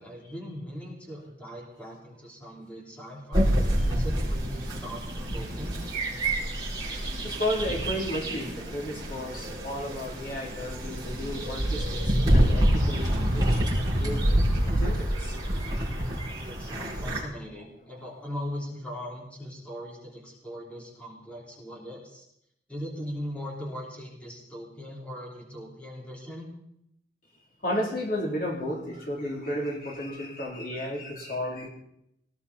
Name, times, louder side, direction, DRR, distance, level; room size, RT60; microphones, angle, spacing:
voice 1, 0.0-3.5 3.9-5.8 16.4-22.2 22.7-26.5, equal, 5° left, -3 dB, 3.5 m, -40 dB
sound 1, 3.3-17.2, right 1 dB, 20° right, 5.5 m, -27 dB
voice 2, 7.2-13.5 14.0-14.3 14.6-15.4 27.6-31.7, left 1 dB, 50° left, -2 dB, 3.1 m, -33 dB
19.0 x 15.5 x 4.2 m, 0.76 s
head